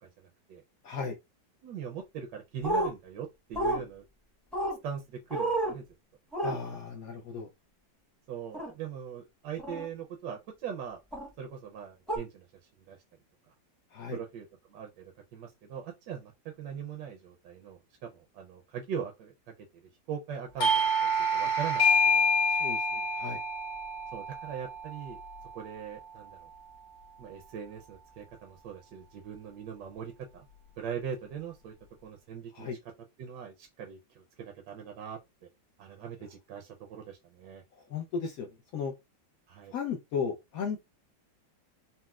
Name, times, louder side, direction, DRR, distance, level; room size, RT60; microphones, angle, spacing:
voice 1, 0.0-0.6 1.6-4.0 4.8-5.8 8.3-11.0 11.4-12.5 12.9-13.0 14.1-19.3 20.1-22.3 24.1-25.2 25.5-26.5 27.2-30.5 30.8-31.7 32.0-32.8 33.2-35.2 35.8-37.6 39.5-39.7, right 8 dB, 70° right, 1.1 m, -41 dB
voice 2, 0.8-1.1 6.4-7.5 13.9-14.2 22.5-23.4 32.5-32.8 37.9-38.9 39.7-40.8, left 6 dB, 80° left, 0.7 m, -35 dB
sound 1, 2.6-2.9 3.5-3.8 4.5-4.8 5.3-5.7 6.3-6.5 8.5-8.7 9.6-9.9 11.1-11.3 12.1-12.2, right 1 dB, ahead, 0.5 m, -30 dB
Doorbell, 20.6-25.9, left 1 dB, 60° left, 1.2 m, -27 dB
4.1 x 2.0 x 2.3 m
omnidirectional pair, 2.1 m